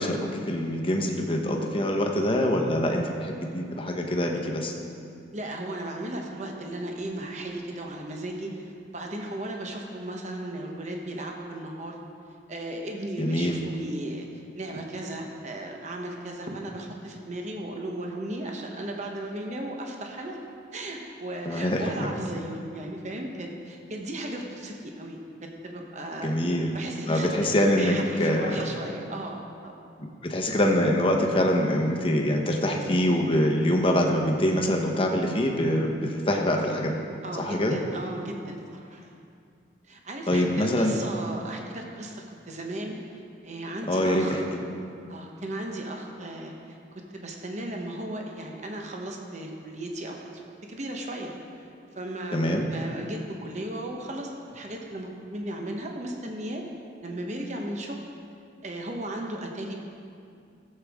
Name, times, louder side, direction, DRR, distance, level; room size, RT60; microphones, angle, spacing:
voice 1, 0.0-4.7 13.2-13.6 21.5-22.1 26.2-26.8 27.1-28.6 30.0-37.0 37.4-37.8 40.3-41.0 43.9-44.6 52.3-52.7, left 1 dB, 30° left, 1 dB, 1.0 m, -24 dB
voice 2, 5.3-12.0 12.5-20.4 20.7-25.2 25.6-26.3 26.7-29.7 37.2-39.1 39.9-44.4 45.1-56.6 57.0-58.0 58.6-59.8, right 1 dB, 40° right, 1 dB, 1.0 m, -36 dB
15.5 x 7.9 x 3.6 m, 2.4 s
head